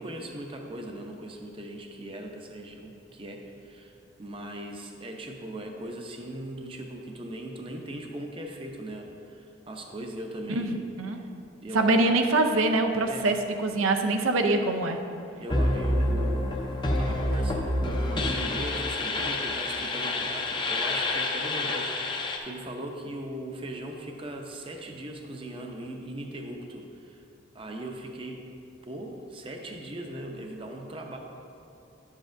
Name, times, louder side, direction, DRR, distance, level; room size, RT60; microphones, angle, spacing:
voice 1, 0.0-10.8 11.1-11.3 11.6-11.9 13.1-13.3 15.4-16.6 16.8-27.2 27.5-28.5 28.8-31.2, right 1 dB, 25° right, 2 dB, 0.6 m, -39 dB
voice 2, 10.5-11.2 11.7-15.0, right 2 dB, 90° right, 5 dB, 0.5 m, -24 dB
sound 1, 15.5-22.4, left 1 dB, 25° left, 0.5 m, -28 dB
10.5 x 7.4 x 2.6 m, 2.7 s
head